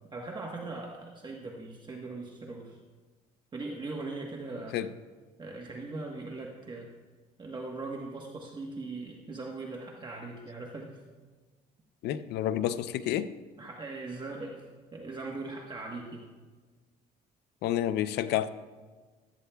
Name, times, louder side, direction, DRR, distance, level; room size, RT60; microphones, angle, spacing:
voice 1, 0.1-2.8 3.5-4.8 5.4-6.9 7.4-11.0 13.6-16.2, right 3 dB, 25° right, 0 dB, 1.2 m, -40 dB
voice 2, 12.0-13.3 17.6-18.5, left 11 dB, 80° left, 13 dB, 0.6 m, -29 dB
16.5 x 12.5 x 2.3 m, 1.4 s
cardioid pair, 110°, 17 cm